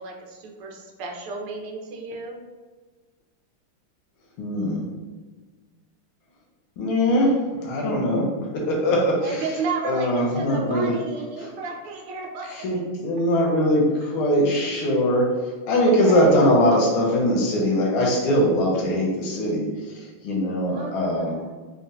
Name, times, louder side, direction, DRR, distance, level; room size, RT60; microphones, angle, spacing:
voice 1, 0.0-2.4 9.2-12.6 15.8-16.4 20.7-21.6, right 4 dB, 75° right, 0 dB, 1.1 m, -33 dB
voice 2, 4.4-4.9 6.8-7.4 7.6-8.3 8.5-9.4 9.8-10.9 11.4-11.5 12.5-15.3 15.7-21.3, equal, 80° left, -2 dB, 1.4 m, -21 dB
3.9 x 2.0 x 2.6 m, 1.4 s
omnidirectional pair, 2.3 m